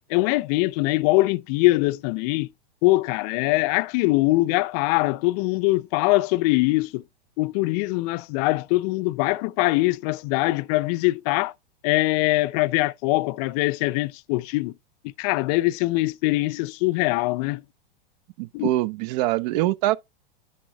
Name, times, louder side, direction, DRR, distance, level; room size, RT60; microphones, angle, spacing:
voice 1, 0.1-2.5 2.8-7.0 7.4-11.5 11.8-14.7 15.2-17.6 18.5-18.7, left 20 dB, 45° left, 0.5 m, -22 dB
voice 2, 18.4-20.0, right 16 dB, 50° right, 0.5 m, -24 dB
9.9 x 3.5 x 3.8 m
hypercardioid pair, 115°, 29 cm